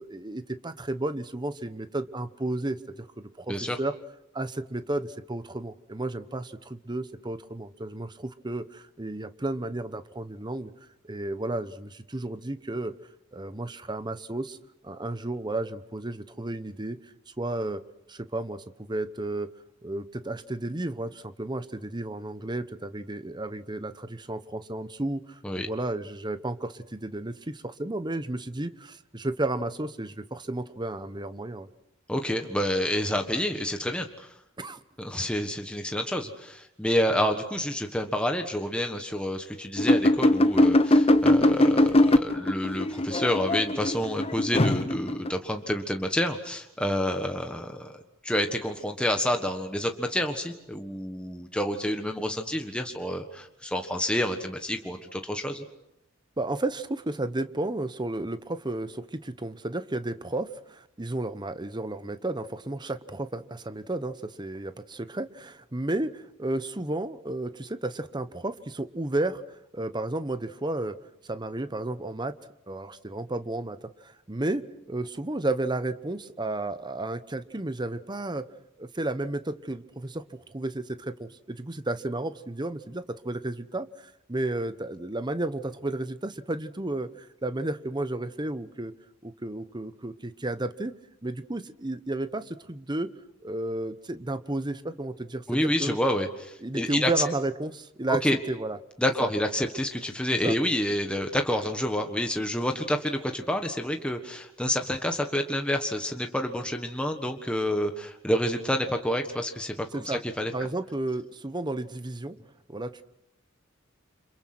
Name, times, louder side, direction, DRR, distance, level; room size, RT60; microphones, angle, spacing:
voice 1, 0.0-3.9 4.3-10.7 11.1-12.9 13.3-14.6 14.8-17.0 17.4-17.8 18.1-19.5 19.8-31.7 34.6-34.8 56.4-71.0 71.2-72.3 72.7-74.6 74.9-78.5 78.8-88.9 89.2-90.9 91.2-93.1 93.4-96.0 96.6-98.8 99.2-99.3 100.4-100.5 109.9-110.2 110.5-112.4 112.7-113.0, right 2 dB, 20° right, 12 dB, 1.0 m, -32 dB
voice 2, 32.1-34.3 35.0-55.6 95.5-97.1 98.1-98.4 99.0-110.5, equal, 5° left, 4 dB, 1.4 m, -28 dB
sound 1, 39.8-45.3, left 1 dB, 30° left, 1.0 m, -21 dB
29.5 x 26.5 x 6.1 m, 0.82 s
head